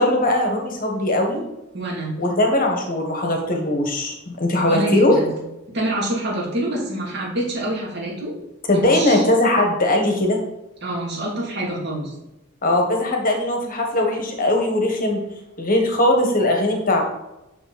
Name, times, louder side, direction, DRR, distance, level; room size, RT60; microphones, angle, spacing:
voice 1, 0.0-1.4 2.2-5.2 8.7-10.4 12.6-15.2 15.6-17.0, left 1 dB, 45° left, 2 dB, 1.4 m, -20 dB
voice 2, 1.7-2.2 4.7-5.3 5.7-8.3 8.7-9.2 10.8-12.1, right 1 dB, 55° right, -4 dB, 2.7 m, -26 dB
7.0 x 6.5 x 4.2 m, 0.94 s
head